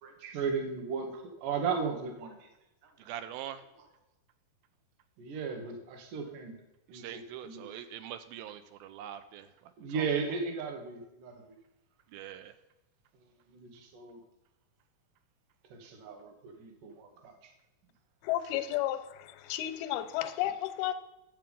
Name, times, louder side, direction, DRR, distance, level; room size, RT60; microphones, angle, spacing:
voice 1, 0.0-2.5 5.2-6.6 6.9-7.8 9.8-11.4 13.5-14.2 15.7-17.5, right 5 dB, 60° right, 2.7 m, -36 dB
voice 2, 3.0-3.6 6.9-9.5 9.9-10.1 12.1-12.5, right 11 dB, 80° right, 2.3 m, -43 dB
voice 3, 18.2-20.9, left 13 dB, 85° left, 2.6 m, -32 dB
11.5 x 7.8 x 5.3 m
omnidirectional pair, 4.5 m